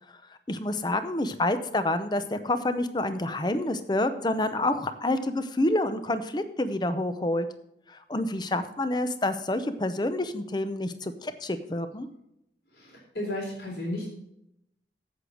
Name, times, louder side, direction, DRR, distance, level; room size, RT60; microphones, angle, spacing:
voice 1, 0.5-7.5 7.9-12.1, left 1 dB, 25° left, 11 dB, 0.6 m, -28 dB
voice 2, 12.7-14.1, left 1 dB, 70° left, -3 dB, 3.7 m, -33 dB
8.2 x 7.8 x 6.3 m, 0.80 s
head